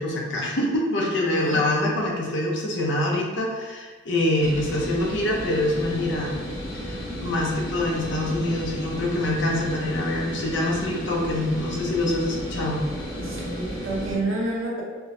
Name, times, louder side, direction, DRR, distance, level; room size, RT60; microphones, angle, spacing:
voice 1, 0.0-6.4 6.7-12.8, left 1 dB, 60° left, -2 dB, 0.7 m, -25 dB
voice 2, 1.3-1.6 13.2-14.8, right 2 dB, 70° right, -3 dB, 0.8 m, -29 dB
sound 1, 4.4-14.2, equal, 75° left, 1.1 m, -33 dB
4.3 x 2.1 x 2.6 m, 1.4 s
head